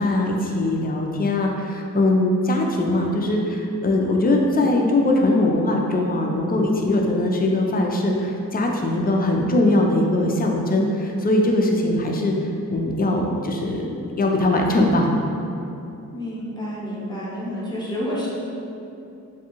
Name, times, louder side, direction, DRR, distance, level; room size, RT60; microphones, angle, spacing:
voice 1, 0.0-12.3 12.7-13.9 14.2-15.1, left 1 dB, 25° left, 0 dB, 0.4 m, -21 dB
voice 2, 16.1-18.3, equal, 10° left, -7 dB, 0.8 m, -29 dB
2.6 x 2.3 x 2.9 m, 2.7 s
cardioid pair, 55°, 35 cm